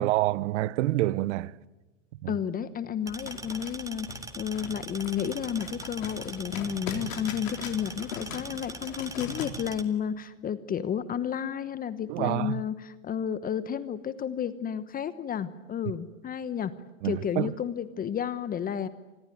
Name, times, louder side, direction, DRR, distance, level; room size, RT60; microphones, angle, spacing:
voice 1, 0.0-1.6 2.2-2.3 12.1-12.6 17.0-17.5, right 17 dB, 60° right, 0.8 m, -27 dB
voice 2, 2.3-4.1 4.3-16.7 17.0-18.9, left 8 dB, 20° left, 1.1 m, -32 dB
sound 1, 3.1-9.8, right 3 dB, 10° right, 1.9 m, -42 dB
sound 2, 3.2-9.5, left 6 dB, 75° left, 4.0 m, -41 dB
27.5 x 21.0 x 9.3 m
hypercardioid pair, 120°, 40 cm